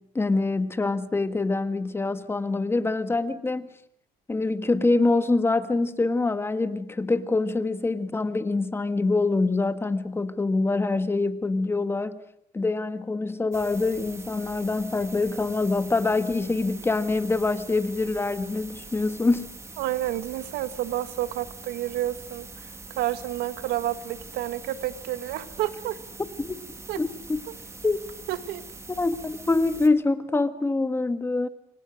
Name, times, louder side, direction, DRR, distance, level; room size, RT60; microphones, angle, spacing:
voice 1, 0.0-3.7 4.3-12.2 12.5-19.5 26.4-26.6 27.0-27.4 27.8-28.0 29.0-31.5, left 3 dB, 15° left, 1.5 m, -25 dB
sound 1, 13.5-29.9, right 3 dB, 15° right, 2.5 m, -43 dB
voice 2, 19.8-26.0 26.9-27.0 28.3-28.7, right 13 dB, 80° right, 1.6 m, -30 dB
28.5 x 24.0 x 6.4 m
cardioid pair, 125°, 16 cm